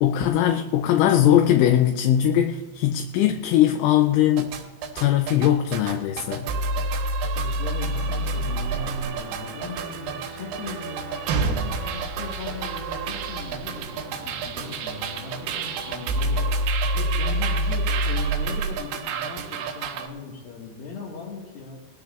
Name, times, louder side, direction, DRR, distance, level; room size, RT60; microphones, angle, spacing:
voice 1, 0.0-4.5 5.0-6.5, left 11 dB, 85° left, 5 dB, 2.9 m, -20 dB
sound 1, 4.4-20.1, right 2 dB, 85° right, 3.8 m, -28 dB
voice 2, 7.4-21.8, left 4 dB, 60° left, -4 dB, 2.9 m, -38 dB
sound 2, 7.9-16.7, right 3 dB, 70° right, 2.4 m, -42 dB
20.0 x 13.5 x 2.4 m, 1.3 s
omnidirectional pair, 5.6 m